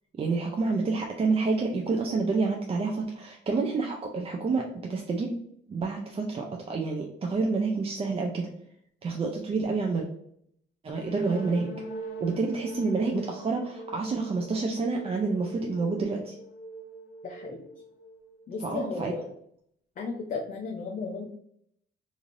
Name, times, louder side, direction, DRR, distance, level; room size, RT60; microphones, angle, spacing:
voice 1, 0.2-4.6 4.9-5.4 5.7-8.5 9.0-10.1 10.8-11.7 12.2-16.4 18.6-19.1, right 4 dB, 30° right, 1 dB, 0.4 m, -28 dB
sound 1, 10.9-18.6, right 1 dB, 85° left, 0.6 m, -42 dB
voice 2, 17.2-17.7 18.5-19.3 20.0-21.2, left 4 dB, 40° left, 0 dB, 0.5 m, -34 dB
3.1 x 2.5 x 2.5 m, 0.69 s
cardioid pair, 90°, 20 cm